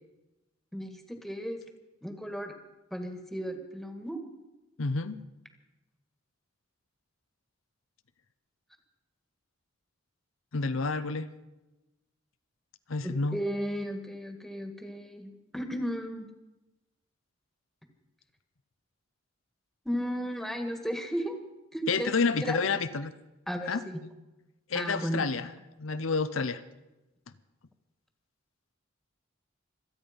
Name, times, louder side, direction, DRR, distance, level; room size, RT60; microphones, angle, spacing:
voice 1, 0.7-1.6 2.0-2.5 2.9-4.2 13.0-16.3 19.9-21.4 21.7-22.1 22.4-22.6 23.5-24.0 24.7-25.3, equal, ahead, 5 dB, 1.8 m, -34 dB
voice 2, 4.8-5.2 10.5-11.3 12.9-13.4 21.9-23.1 23.7-23.8 24.7-25.5 25.8-26.6, left 4 dB, 85° left, 11 dB, 0.8 m, -29 dB
26.0 x 9.0 x 5.3 m, 1.0 s
head